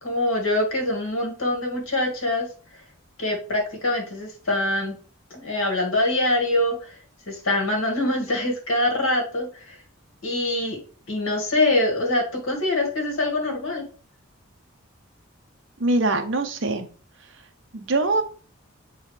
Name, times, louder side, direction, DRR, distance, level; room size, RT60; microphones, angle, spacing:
voice 1, 0.0-2.5 3.2-5.0 5.3-6.9 7.3-9.8 10.2-10.8 11.1-13.8, left 1 dB, 80° left, 0 dB, 2.0 m, -24 dB
voice 2, 15.8-16.9 17.7-18.2, right 2 dB, 60° right, 7 dB, 0.8 m, -23 dB
7.3 x 3.9 x 3.3 m, 0.39 s
head